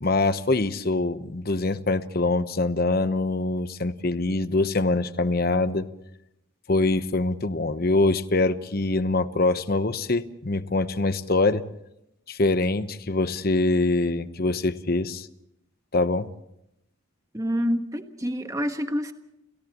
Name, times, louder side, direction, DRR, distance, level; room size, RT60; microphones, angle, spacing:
voice 1, 0.0-5.9 6.7-11.6 12.3-15.3 15.9-16.3, left 2 dB, 45° left, 12 dB, 1.0 m, -24 dB
voice 2, 17.3-19.1, equal, 15° right, 6 dB, 1.3 m, -27 dB
30.0 x 29.5 x 3.0 m, 0.82 s
head